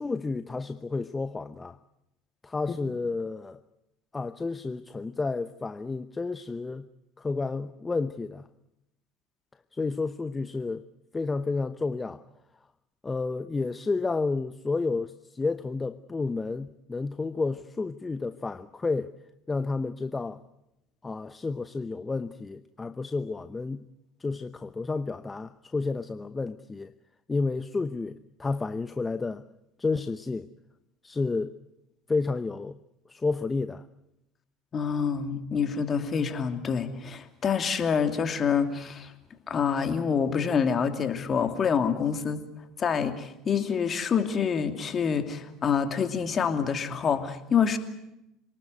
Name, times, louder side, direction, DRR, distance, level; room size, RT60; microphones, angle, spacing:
voice 1, 0.0-1.8 2.4-3.6 4.1-6.9 7.2-8.5 9.7-10.9 11.1-12.2 13.0-19.1 19.5-20.4 21.0-23.8 24.2-26.9 27.3-29.4 29.8-30.5 31.0-31.6 32.1-32.8 33.1-33.8, left 3 dB, 20° left, 0.9 m, -31 dB
voice 2, 34.7-39.1 39.5-42.4 42.8-47.8, left 6 dB, 35° left, 2.8 m, -27 dB
28.0 x 19.5 x 8.1 m
hypercardioid pair, 70°, 0 cm